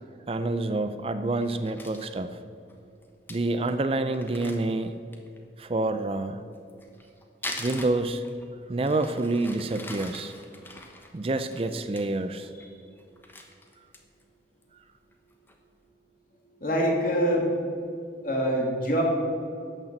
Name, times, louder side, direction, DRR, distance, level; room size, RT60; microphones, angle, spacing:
voice 1, 0.3-2.3 3.3-4.9 5.6-6.4 7.6-8.2 8.7-10.3 11.1-12.5, right 2 dB, 30° right, 10 dB, 0.4 m, -27 dB
Crumpling crinkling, 1.4-2.1 2.7-2.8 3.0-3.1 3.3-3.4 3.7-3.8 4.1-5.4 6.5-8.5 8.8-12.0 12.4-12.7 13.0-14.2 14.6-14.7 15.1-15.6, left 2 dB, 10° left, 1.0 m, -42 dB
voice 2, 12.6-13.0 16.4-17.5 18.2-19.0, equal, 50° left, -1 dB, 2.6 m, -26 dB
11.5 x 6.7 x 7.6 m, 2.5 s
head